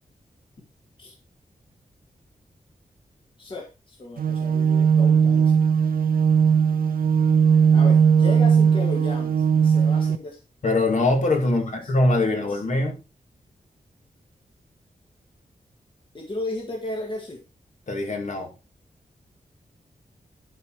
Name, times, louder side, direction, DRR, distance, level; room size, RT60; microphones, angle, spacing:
voice 1, 3.4-5.5 7.7-10.4 11.5-11.8 12.2-12.6 16.1-17.4, left 2 dB, 35° left, 0 dB, 2.0 m, -35 dB
sound 1, 4.2-10.2, right 7 dB, 75° right, 0.7 m, -18 dB
voice 2, 10.6-13.0 17.9-18.5, left 2 dB, 55° left, 2 dB, 2.4 m, -22 dB
11.5 x 4.9 x 4.6 m, 0.28 s
wide cardioid pair, 170°, 15 cm